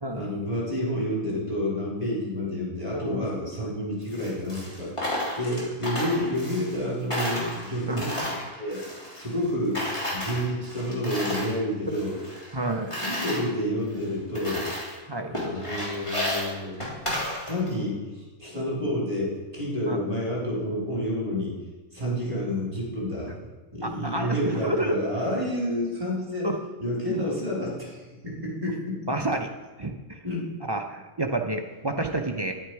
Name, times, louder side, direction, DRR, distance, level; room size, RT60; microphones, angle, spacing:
voice 1, 0.1-4.9 5.4-8.1 8.6-9.8 10.1-12.2 13.0-14.7 15.3-16.8 17.5-21.5 21.9-23.3 23.7-26.5 26.8-29.0 30.2-30.5, equal, 25° right, -5 dB, 3.9 m, -29 dB
voice 2, 2.9-3.3 5.5-5.7 7.9-8.1 12.5-13.0 15.1-15.4 19.9-20.0 23.8-24.9 26.4-26.5 27.1-27.3 29.1-29.5 29.8-30.2 30.7-32.5, right 2 dB, 40° right, 3 dB, 0.3 m, -29 dB
Coin (dropping), 4.0-6.8 7.1-9.5 9.7-11.6 11.9-13.4 13.9-14.0 14.3-15.0 15.3-17.8, left 1 dB, 20° left, 3.3 m, -32 dB
10.5 x 9.3 x 4.8 m, 1.2 s
omnidirectional pair, 1.6 m